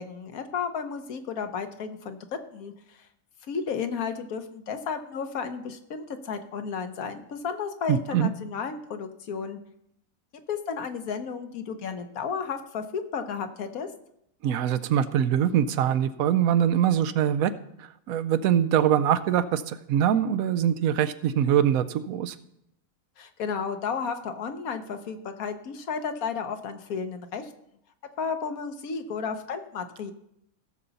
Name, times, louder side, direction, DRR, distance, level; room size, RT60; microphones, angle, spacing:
voice 1, 0.0-2.2 2.5-3.1 3.5-9.6 10.5-13.9 23.2-27.5 28.2-30.1, left 6 dB, 80° left, 8 dB, 1.4 m, -33 dB
voice 2, 7.9-8.3 14.4-17.5 17.8-22.4, right 9 dB, 85° right, 13 dB, 1.1 m, -23 dB
16.5 x 6.9 x 4.0 m, 0.76 s
omnidirectional pair, 1.5 m